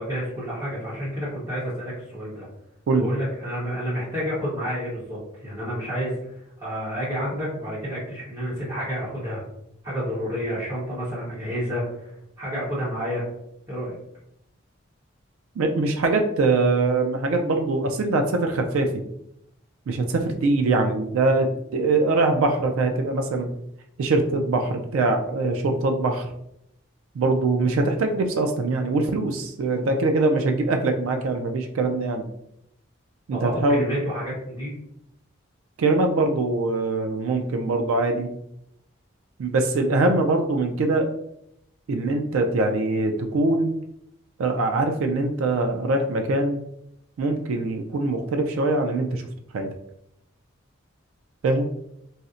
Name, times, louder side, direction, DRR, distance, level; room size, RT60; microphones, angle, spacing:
voice 1, 0.0-2.5 3.0-9.4 9.8-13.3 13.7-14.0 33.3-34.7, equal, 20° right, -10 dB, 0.9 m, -30 dB
voice 2, 15.6-19.0 19.9-23.5 24.0-26.3 27.2-32.3 33.3-33.8 35.8-38.3 39.4-41.1 41.9-43.7 44.4-46.6 47.2-49.2 49.5-49.7 51.4-51.7, right 2 dB, 80° right, 4 dB, 0.3 m, -23 dB
4.0 x 2.0 x 2.4 m, 0.78 s
head